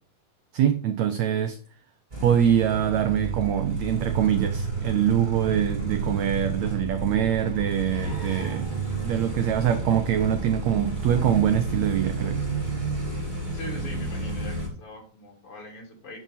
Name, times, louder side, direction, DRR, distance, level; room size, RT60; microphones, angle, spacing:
voice 1, 0.5-1.6 2.2-8.7 9.0-12.4, right 10 dB, 75° right, 1.6 m, -24 dB
sound 1, 2.1-14.7, right 3 dB, 15° right, 2.8 m, -30 dB
voice 2, 13.5-16.2, left 1 dB, 40° left, 3.3 m, -41 dB
11.0 x 6.1 x 4.2 m
omnidirectional pair, 3.9 m